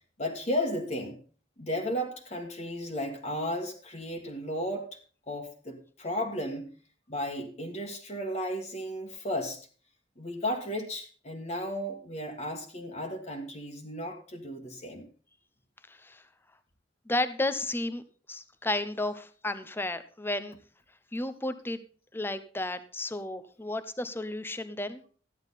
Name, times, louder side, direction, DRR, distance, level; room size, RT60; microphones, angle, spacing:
voice 1, 0.2-1.2 1.6-4.9 5.3-6.7 7.1-9.6 10.2-15.1, equal, 40° left, 1 dB, 1.7 m, -34 dB
voice 2, 15.9-16.2 17.1-18.0 18.3-20.6 21.1-21.8 22.1-25.0, left 2 dB, 15° left, 12 dB, 0.8 m, -32 dB
13.5 x 10.5 x 4.1 m, 0.40 s
head